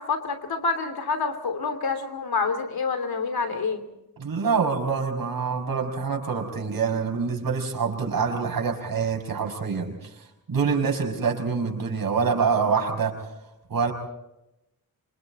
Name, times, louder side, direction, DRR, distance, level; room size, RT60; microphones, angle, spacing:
voice 1, 0.0-3.8, left 4 dB, 85° left, 8 dB, 3.1 m, -27 dB
voice 2, 4.2-10.1 10.5-13.2 13.7-13.9, right 5 dB, 70° right, 2 dB, 5.8 m, -25 dB
26.5 x 26.0 x 4.3 m, 0.88 s
cardioid pair, 75°, 36 cm